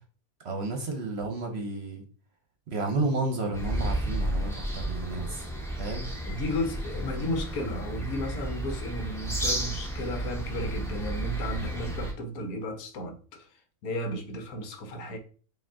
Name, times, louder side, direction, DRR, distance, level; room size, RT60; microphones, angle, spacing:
voice 1, 0.4-2.0 2.7-5.5 5.8-6.1, right 3 dB, 50° right, 0.9 m, -31 dB
sound 1, 3.5-12.1, right 1 dB, 5° left, 0.4 m, -32 dB
voice 2, 6.2-13.5 13.8-15.2, left 1 dB, 75° left, 1.2 m, -34 dB
4.9 x 2.7 x 3.6 m
omnidirectional pair, 1.6 m